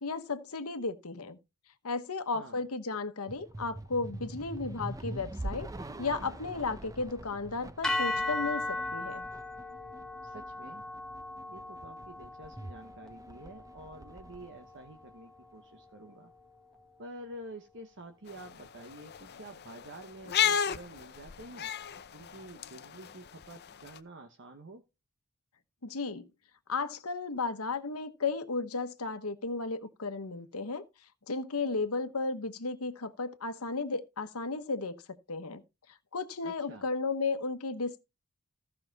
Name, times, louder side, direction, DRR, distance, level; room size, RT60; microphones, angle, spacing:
voice 1, 0.0-1.4 1.8-5.7 6.0-9.3 25.8-26.2 26.7-30.8 31.3-35.0 35.3-35.6 36.1-38.0, left 3 dB, 75° left, 1.1 m, -34 dB
voice 2, 2.3-2.6 10.2-10.8 11.5-16.3 17.0-21.7 22.1-24.8 36.4-36.9, right 1 dB, 55° right, 1.1 m, -49 dB
sound 1, 3.3-15.8, right 1 dB, 15° right, 0.6 m, -45 dB
sound 2, 7.8-16.1, left 2 dB, 5° left, 1.4 m, -38 dB
sound 3, 18.3-24.0, left 8 dB, 45° left, 0.6 m, -34 dB
14.5 x 5.7 x 4.1 m
head